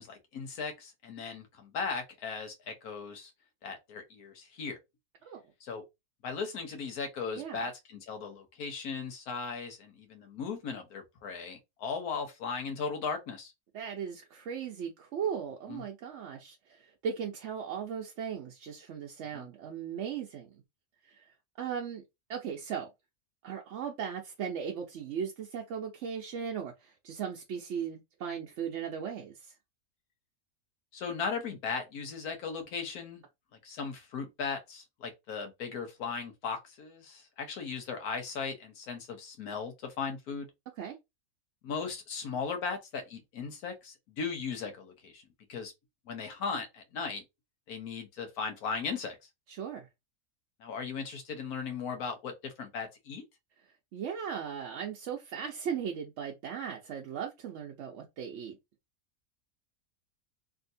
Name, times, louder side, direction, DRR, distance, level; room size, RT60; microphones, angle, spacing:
voice 1, 0.0-3.3 3.6-4.8 5.6-5.8 6.2-13.5 15.7-15.8 19.3-19.5 30.9-33.2 33.6-40.5 41.6-45.2 45.5-45.7 46.1-47.2 47.7-49.2 50.6-53.2, left 5 dB, 85° left, 1.4 m, -37 dB
voice 2, 13.7-20.5 21.1-21.2 21.6-22.0 22.3-22.9 23.4-29.5 40.8-41.0 49.5-49.9 53.9-58.6, right 7 dB, 60° right, 0.8 m, -37 dB
3.5 x 2.7 x 2.6 m
omnidirectional pair, 1.5 m